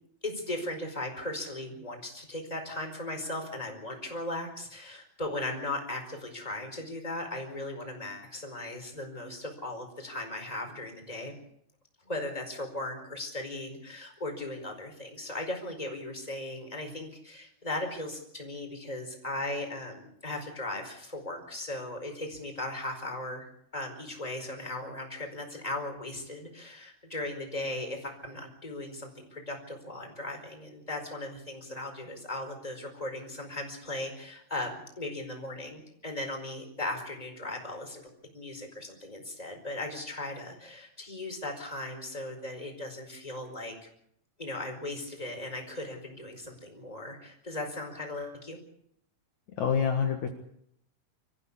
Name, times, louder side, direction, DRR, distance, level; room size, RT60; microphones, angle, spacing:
voice 1, 0.2-11.3 12.1-23.5 23.7-38.0 38.3-43.9 44.4-48.6, left 1 dB, 10° left, 4 dB, 4.6 m, -37 dB
voice 2, 49.6-50.3, left 7 dB, 60° left, 4 dB, 2.8 m, -26 dB
25.5 x 15.0 x 8.4 m, 0.72 s
omnidirectional pair, 3.9 m